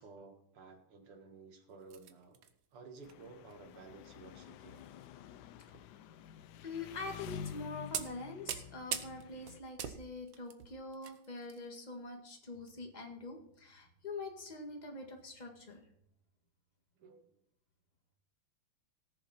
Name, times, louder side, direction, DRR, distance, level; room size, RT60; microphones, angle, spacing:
voice 1, 0.0-2.4 2.7-4.8 17.0-17.3, right 4 dB, 85° right, 4 dB, 2.6 m, -54 dB
sound 1, 1.8-2.5 3.0-3.1 3.5-3.7 4.8-5.1 5.7-5.9 6.7-6.8 7.3-7.5 7.9-11.6 11.9-12.1 12.7-12.8, right 9 dB, 65° right, 1.5 m, -43 dB
Engine, 3.0-9.6, left 10 dB, 85° left, 0.9 m, -49 dB
voice 2, 6.6-15.8, left 3 dB, 20° left, 2 dB, 1.8 m, -45 dB
18.0 x 7.2 x 4.4 m, 0.77 s
omnidirectional pair, 2.4 m